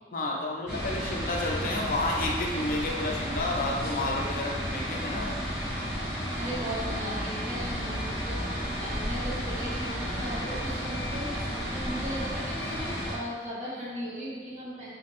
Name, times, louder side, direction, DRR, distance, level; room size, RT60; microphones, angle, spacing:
voice 1, 0.1-5.3, left 2 dB, 50° left, -1 dB, 0.5 m, -30 dB
sound 1, 0.7-13.1, equal, 5° right, 1.5 m, -32 dB
voice 2, 6.4-14.9, equal, 40° right, -6 dB, 1.0 m, -37 dB
4.2 x 3.9 x 2.5 m, 1.5 s
head